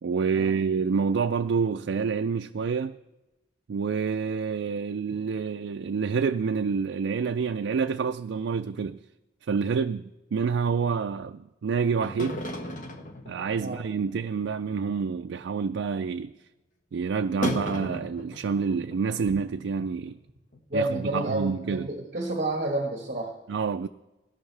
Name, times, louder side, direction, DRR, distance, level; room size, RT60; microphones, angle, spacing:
voice 1, 0.0-3.0 3.7-9.0 9.5-12.4 13.2-16.3 16.9-20.2 20.7-21.9 23.5-23.9, right 5 dB, 85° right, 0.4 m, -28 dB
sound 1, 12.0-14.1 14.4-14.5 14.8-14.9 15.1-15.4 15.8-15.9 17.4-19.3 19.6-19.7 20.1-20.2 20.5-20.6, left 1 dB, 45° left, 1.1 m, -34 dB
voice 2, 20.7-23.3, right 1 dB, 45° right, 1.3 m, -29 dB
17.5 x 12.0 x 3.3 m
head